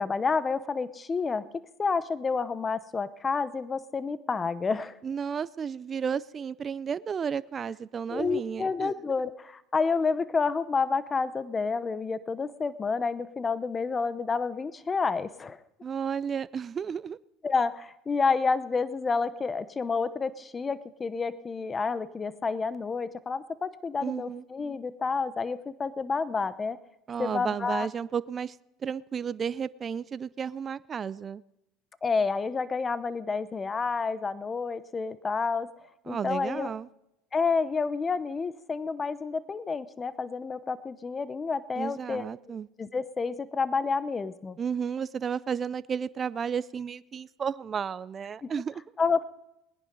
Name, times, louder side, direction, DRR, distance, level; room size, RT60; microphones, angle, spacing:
voice 1, 0.0-4.9 8.1-15.6 17.4-26.8 27.2-27.9 32.0-35.7 36.1-36.7 37.3-42.2 42.8-44.6 48.4-48.5 49.0-49.2, left 4 dB, 25° left, 0.9 m, -29 dB
voice 2, 5.0-8.9 15.8-17.2 24.0-24.4 27.1-28.6 28.8-31.4 36.1-36.9 41.8-42.7 44.6-48.8, right 7 dB, 35° right, 0.5 m, -32 dB
19.5 x 10.0 x 5.3 m
supercardioid pair, 100°, 0 cm